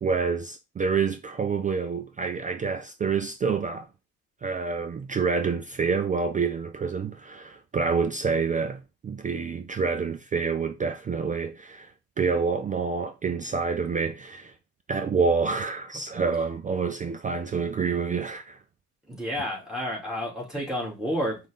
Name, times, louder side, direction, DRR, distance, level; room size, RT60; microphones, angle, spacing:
voice 1, 0.0-3.9 4.4-11.9 12.2-14.5 14.9-18.6, right 5 dB, 20° right, 0.3 m, -27 dB
voice 2, 19.1-21.4, equal, ahead, 2.7 m, -30 dB
5.2 x 2.6 x 3.5 m
hypercardioid pair, 60°, 50 cm